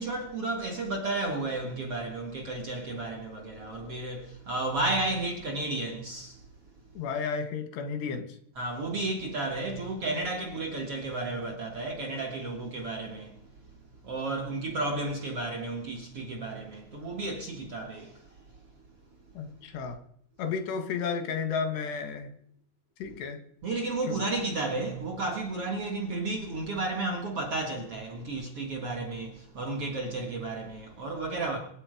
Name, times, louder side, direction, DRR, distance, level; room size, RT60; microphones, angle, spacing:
voice 1, 0.0-6.4 8.6-13.5 14.0-18.4 23.6-31.6, right 2 dB, 50° right, 1.8 m, -33 dB
voice 2, 7.0-8.3 19.4-20.0 20.4-22.3 23.0-23.4 24.1-24.2, left 6 dB, 85° left, 3.8 m, -32 dB
24.5 x 9.0 x 5.0 m
omnidirectional pair, 4.7 m